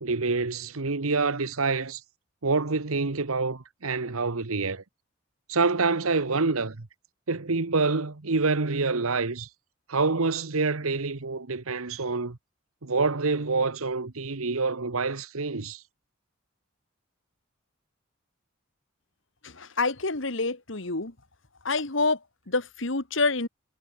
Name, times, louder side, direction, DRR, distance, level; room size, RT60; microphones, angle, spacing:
voice 1, 0.0-2.0 2.4-4.8 5.5-6.9 7.3-9.5 9.9-12.4 12.8-15.8, right 4 dB, 85° right, 1.2 m, -27 dB
voice 2, 19.4-21.1 21.6-23.5, left 3 dB, 65° left, 2.0 m, -27 dB
head